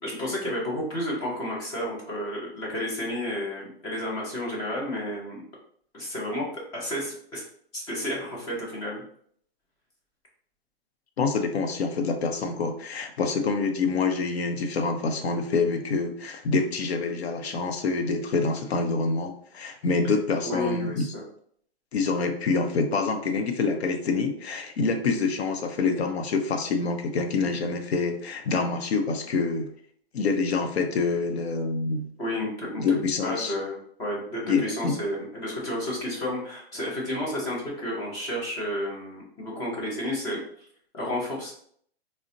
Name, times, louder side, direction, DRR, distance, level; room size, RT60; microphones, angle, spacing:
voice 1, 0.0-5.4 5.9-6.5 6.7-7.4 7.7-9.0 20.4-21.2 32.2-32.8 33.2-40.4 40.9-41.5, left 1 dB, 10° left, -3 dB, 0.4 m, -31 dB
voice 2, 11.2-21.1 21.9-29.7 30.1-32.1 32.8-33.5 34.5-34.9, left 4 dB, 85° left, 5 dB, 0.7 m, -26 dB
3.8 x 2.1 x 2.5 m, 0.62 s
hypercardioid pair, 150°, 31 cm